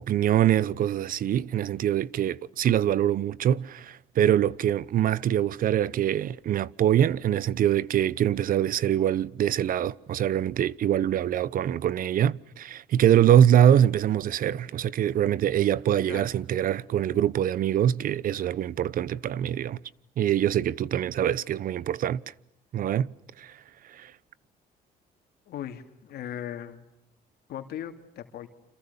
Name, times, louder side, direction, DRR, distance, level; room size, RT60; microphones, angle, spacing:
voice 1, 0.0-19.8 20.2-22.2 22.7-23.5 23.9-24.1, right 10 dB, 55° right, 1.0 m, -24 dB
voice 2, 25.5-26.8 27.5-28.5, left 10 dB, 70° left, 2.8 m, -38 dB
29.5 x 27.0 x 7.1 m
cardioid pair, 110°, 17 cm